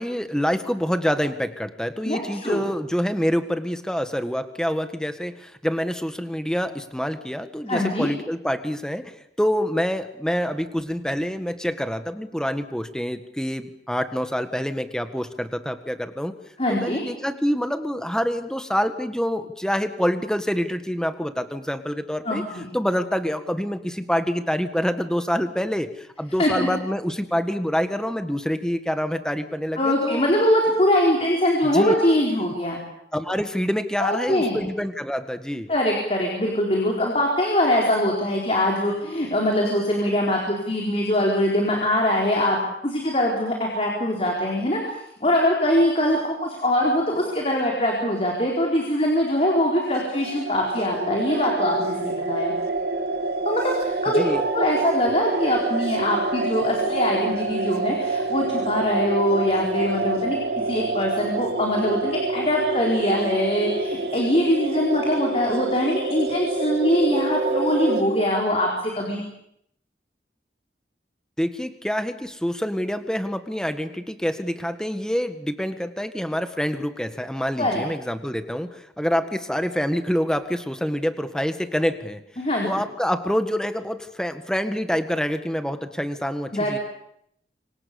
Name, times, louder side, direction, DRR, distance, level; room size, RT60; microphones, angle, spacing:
voice 1, 0.0-16.3 16.7-22.4 22.7-30.3 31.7-31.9 33.1-35.7 54.1-54.4 71.4-82.2 82.6-86.8, equal, 5° left, 9 dB, 1.7 m, -26 dB
voice 2, 2.0-2.6 7.7-8.1 16.6-17.0 22.2-22.7 26.4-26.7 29.8-32.8 34.0-34.6 35.7-52.5 53.4-60.4 60.6-69.2 77.6-77.8 82.4-82.7 86.5-86.8, left 1 dB, 35° left, -1 dB, 4.7 m, -23 dB
sound 1, 49.8-68.0, right 3 dB, 60° right, 2.7 m, -27 dB
28.5 x 25.0 x 7.0 m, 0.74 s
head